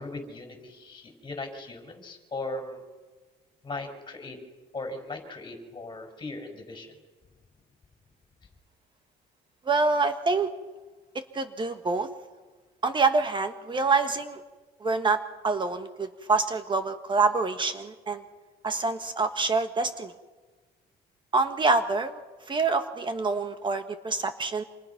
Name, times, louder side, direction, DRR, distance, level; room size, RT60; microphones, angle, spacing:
voice 1, 0.0-2.8 3.6-4.4 4.7-6.9, left 2 dB, 25° left, 5 dB, 5.9 m, -38 dB
voice 2, 9.6-10.5 11.3-12.1 12.8-14.4 14.8-18.2 18.6-20.1 21.3-22.2 22.5-24.6, right 3 dB, 30° right, 8 dB, 1.4 m, -26 dB
29.5 x 27.5 x 5.9 m, 1.3 s
cardioid pair, 110°, 17 cm